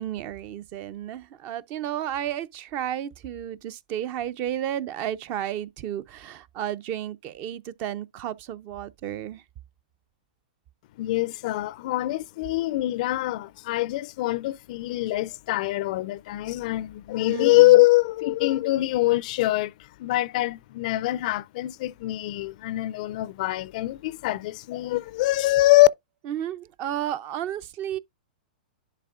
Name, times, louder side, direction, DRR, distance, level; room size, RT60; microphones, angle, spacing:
voice 1, 0.0-9.4 17.3-17.8 26.3-28.0, right 11 dB, 40° right, 0.5 m, -32 dB
voice 2, 11.0-19.7 20.0-25.9, left 18 dB, 55° left, 0.4 m, -23 dB
11.0 x 4.3 x 2.5 m
hypercardioid pair, 130°, 5 cm